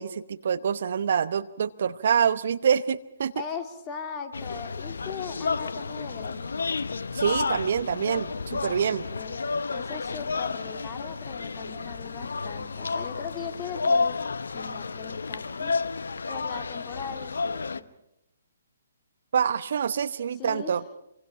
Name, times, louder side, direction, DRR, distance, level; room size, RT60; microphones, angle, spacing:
voice 1, 0.0-3.3 7.1-9.0 19.3-20.8, right 7 dB, 55° right, 15 dB, 0.8 m, -26 dB
voice 2, 3.4-6.5 9.1-14.2 14.5-15.7 16.3-17.9 20.3-20.8, left 6 dB, 25° left, 5 dB, 2.4 m, -39 dB
sound 1, 4.3-17.8, left 4 dB, 70° left, 0.9 m, -31 dB
27.5 x 24.0 x 5.8 m, 0.85 s
figure-of-eight pair, 135°, 0 cm